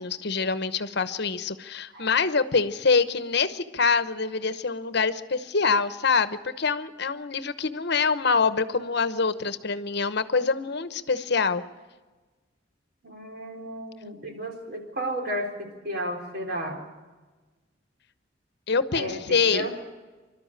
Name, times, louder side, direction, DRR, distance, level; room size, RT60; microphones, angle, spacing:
voice 1, 0.0-11.6 18.7-19.7, left 4 dB, 60° left, 13 dB, 1.0 m, -25 dB
voice 2, 13.0-16.8 19.0-19.8, equal, 55° right, 2 dB, 3.9 m, -33 dB
26.0 x 13.0 x 9.0 m, 1.3 s
head